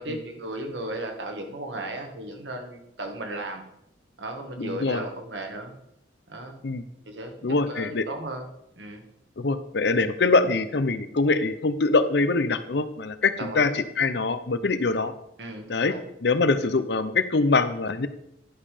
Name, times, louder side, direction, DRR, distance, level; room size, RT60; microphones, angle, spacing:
voice 1, 0.0-3.6 4.2-5.7 6.3-6.6 7.1-7.3 7.7-8.5 8.8-9.0 13.4-13.7 15.4-16.0, right 1 dB, 75° right, 4 dB, 1.7 m, -35 dB
voice 2, 4.6-5.1 6.6-6.8 7.4-8.0 9.4-15.1 15.7-15.9 16.2-18.1, left 3 dB, 65° left, 12 dB, 0.7 m, -24 dB
11.0 x 5.5 x 5.0 m, 0.77 s
head